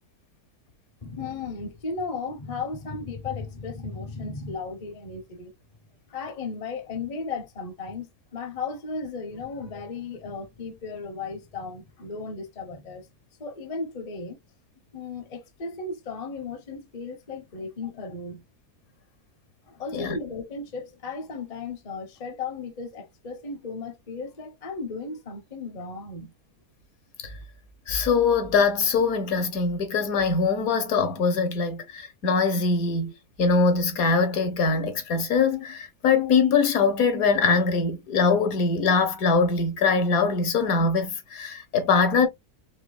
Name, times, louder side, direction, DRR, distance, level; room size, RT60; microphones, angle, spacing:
voice 1, 1.0-5.5 6.1-13.1 13.4-14.4 14.9-18.4 19.7-26.3, left 4 dB, 40° left, 0.6 m, -35 dB
voice 2, 27.9-33.1 33.4-42.3, left 4 dB, 65° left, 1.3 m, -22 dB
4.3 x 2.6 x 2.3 m
omnidirectional pair, 1.7 m